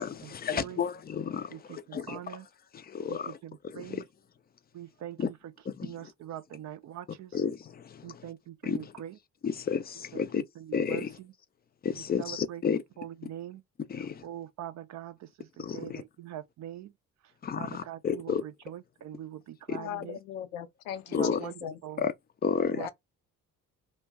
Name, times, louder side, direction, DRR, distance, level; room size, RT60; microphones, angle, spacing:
voice 1, 0.0-2.4 2.7-3.4 3.6-4.0 5.2-5.3 5.6-6.1 7.1-8.3 8.6-8.9 9.4-10.4 10.7-11.2 11.8-12.8 13.2-13.3 13.9-14.2 15.6-16.0 17.4-18.4 19.7-19.8 21.1-21.4 22.0-22.1 22.4-22.9, left 7 dB, 25° left, 0.4 m, -32 dB
voice 2, 0.5-0.8 1.5-2.5 3.1-4.0 4.7-5.3 5.8-7.4 8.0-9.1 10.1-11.0 12.2-12.6 13.0-13.6 14.2-16.9 17.6-20.2 21.1-21.5 21.8-22.1 22.7-22.9, right 11 dB, 40° right, 0.5 m, -42 dB
voice 3, 19.8-21.8 22.8-22.9, left 9 dB, 70° left, 0.6 m, -38 dB
2.9 x 2.1 x 3.3 m
figure-of-eight pair, 45°, 43 cm